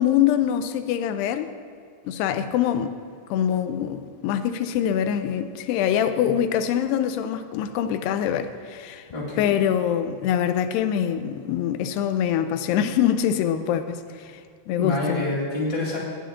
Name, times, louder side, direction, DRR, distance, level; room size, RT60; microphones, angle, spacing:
voice 1, 0.0-1.5 2.1-2.9 3.3-9.1 9.4-14.4 14.7-15.3, left 9 dB, 85° left, 9 dB, 2.7 m, -24 dB
voice 2, 9.1-9.5 14.8-16.0, left 2 dB, 10° left, -6 dB, 2.4 m, -27 dB
18.5 x 9.8 x 3.8 m, 2.2 s
omnidirectional pair, 4.6 m